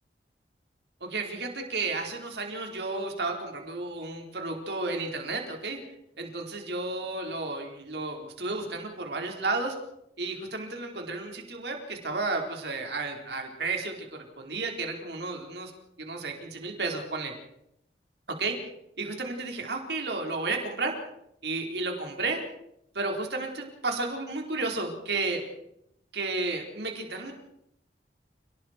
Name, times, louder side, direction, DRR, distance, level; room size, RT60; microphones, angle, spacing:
voice 1, 1.0-5.8 6.2-9.8 10.2-15.7 16.0-17.3 18.3-18.6 19.0-21.0 21.4-22.4 22.9-25.4 26.1-27.3, right 3 dB, 70° right, 2 dB, 4.5 m, -32 dB
29.5 x 19.0 x 4.6 m, 0.77 s
head